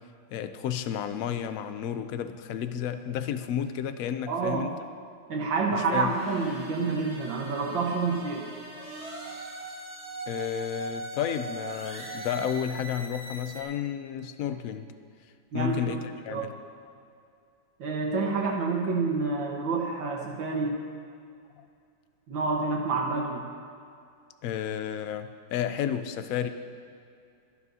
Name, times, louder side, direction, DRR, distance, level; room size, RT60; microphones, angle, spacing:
voice 1, 0.3-4.7 5.7-6.1 10.3-14.9 15.5-16.5 21.6-21.7 24.4-26.5, left 9 dB, 75° left, 9 dB, 0.7 m, -32 dB
voice 2, 4.3-4.7 5.3-8.5 15.5-16.0 16.3-16.5 17.8-20.8 22.3-23.4, right 4 dB, 80° right, 0 dB, 2.0 m, -28 dB
kng-sm-synth, 5.8-13.6, right 2 dB, 50° right, 3.3 m, -40 dB
24.5 x 9.8 x 2.7 m, 2.4 s
omnidirectional pair, 2.1 m